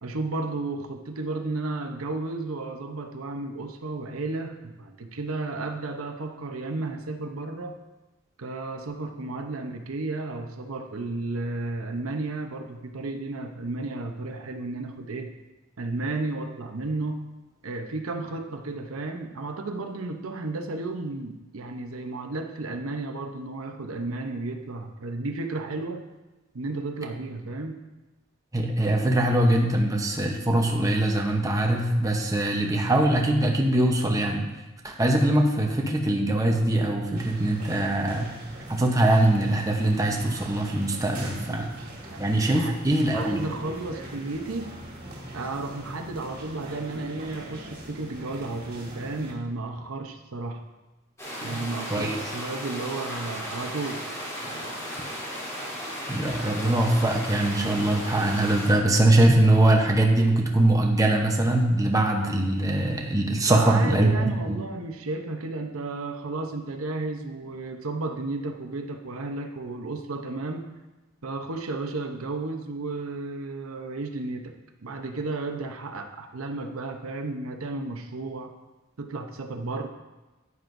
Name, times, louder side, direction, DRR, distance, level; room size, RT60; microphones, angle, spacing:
voice 1, 0.0-7.8 8.4-15.3 15.8-17.2 17.6-26.0 26.5-27.8 41.5-41.7 42.1-42.3 42.5-42.8 43.1-44.8 45.3-50.6 51.4-54.1 54.4-54.8 63.4-70.7 71.2-74.5 74.8-78.5 79.0-79.9, right 2 dB, 85° right, 4 dB, 0.8 m, -33 dB
voice 2, 28.5-34.4 34.8-38.3 38.7-41.7 42.2-43.5 51.5-51.6 51.9-52.2 56.1-64.6, right 1 dB, 15° right, 1 dB, 0.9 m, -22 dB
sound 1, 37.2-49.3, right 1 dB, 45° right, 2.0 m, -41 dB
sound 2, 51.2-58.7, equal, 15° left, 3.2 m, -35 dB
10.5 x 9.6 x 2.6 m, 1.1 s
head